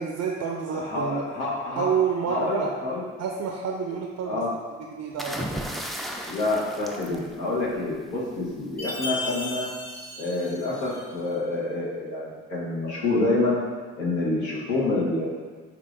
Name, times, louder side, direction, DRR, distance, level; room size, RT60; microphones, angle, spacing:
voice 1, 0.0-1.2 1.8-2.7 3.2-4.4 4.8-5.6, right 6 dB, 65° right, 1 dB, 0.5 m, -28 dB
voice 2, 0.7-1.9 2.3-3.0 4.2-4.5 6.3-9.7 10.2-13.6 14.0-15.3, left 2 dB, 90° left, -7 dB, 1.1 m, -27 dB
sound 1, 5.2-7.9 9.2-9.5, equal, ahead, 0.3 m, -35 dB
Chime, 8.8-11.3, left 2 dB, 30° left, 1.3 m, -35 dB
5.7 x 2.5 x 2.5 m, 1.5 s
supercardioid pair, 50°, 30 cm